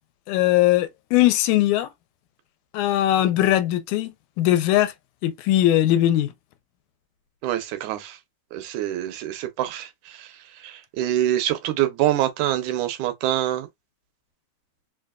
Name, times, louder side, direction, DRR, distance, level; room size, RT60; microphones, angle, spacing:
voice 1, 0.3-1.9 2.7-4.1 4.4-4.9 5.2-6.3, left 13 dB, 90° left, 2.0 m, -20 dB
voice 2, 7.4-8.2 8.5-10.3 10.6-13.7, right 13 dB, 90° right, 2.1 m, -25 dB
4.9 x 2.3 x 2.3 m
omnidirectional pair, 3.4 m